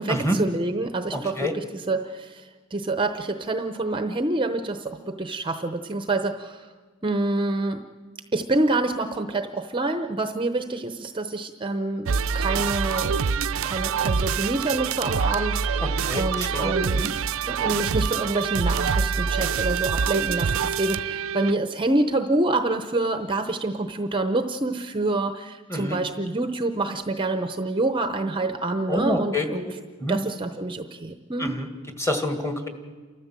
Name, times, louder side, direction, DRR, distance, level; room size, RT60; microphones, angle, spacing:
voice 1, 0.0-6.7 7.0-7.8 8.3-12.1 12.3-13.1 13.6-15.8 16.2-17.1 17.5-29.6 30.1-31.5, right 2 dB, 25° right, 7 dB, 0.8 m, -27 dB
voice 2, 1.1-1.5 15.8-17.1 25.7-26.0 28.9-29.5 30.0-30.2 31.4-31.7 32.0-32.7, left 1 dB, 15° left, 5 dB, 1.9 m, -27 dB
sound 1, 12.1-21.5, right 6 dB, 65° right, 0.5 m, -25 dB
29.0 x 14.0 x 7.5 m, 1.4 s
head